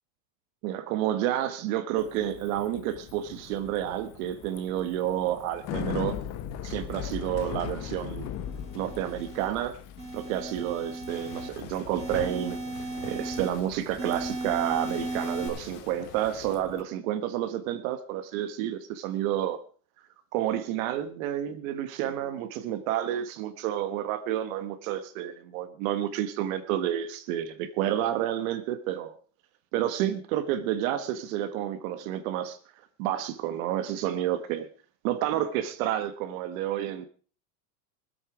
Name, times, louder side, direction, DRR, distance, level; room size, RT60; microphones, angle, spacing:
voice 1, 0.6-6.2 6.6-8.3 8.7-9.8 10.1-12.6 13.0-19.6 20.3-29.1 29.7-32.6 33.0-34.7 35.0-37.1, right 11 dB, 55° right, 11 dB, 1.3 m, -30 dB
Bicycle, 2.0-16.8, left 9 dB, 30° left, 1.0 m, -40 dB
sound 1, 8.4-9.5 10.0-11.5 12.0-13.5 14.0-15.5, right 2 dB, 10° right, 6.1 m, -36 dB
sound 2, 11.1-16.6, left 9 dB, 50° left, 2.9 m, -46 dB
24.0 x 8.3 x 4.8 m, 0.39 s
supercardioid pair, 155°, 50 cm